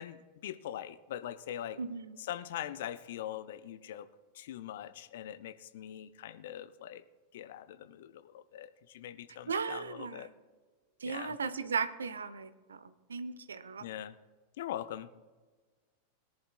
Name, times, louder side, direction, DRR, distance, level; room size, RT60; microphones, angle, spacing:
voice 1, 0.0-1.8 2.2-4.1 4.3-7.0 7.3-10.3 11.0-11.4 13.8-14.1 14.6-15.1, left 11 dB, 55° left, 12 dB, 0.6 m, -42 dB
voice 2, 1.8-2.2 9.5-10.3 11.0-13.8, right 5 dB, 70° right, 13 dB, 0.8 m, -36 dB
21.5 x 10.5 x 2.3 m, 1.4 s
figure-of-eight pair, 90°, 0 cm